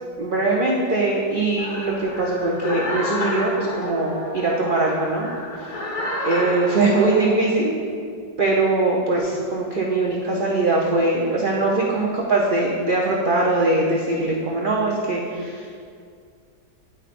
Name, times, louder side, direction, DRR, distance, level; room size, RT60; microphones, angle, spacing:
voice 1, 0.2-5.3 5.6-5.8 6.2-7.7 8.4-15.8, right 2 dB, 90° right, -3 dB, 0.4 m, -21 dB
sound 1, 1.6-7.3, left 1 dB, 65° left, 1.8 m, -30 dB
9.6 x 5.5 x 2.5 m, 2.2 s
omnidirectional pair, 1.8 m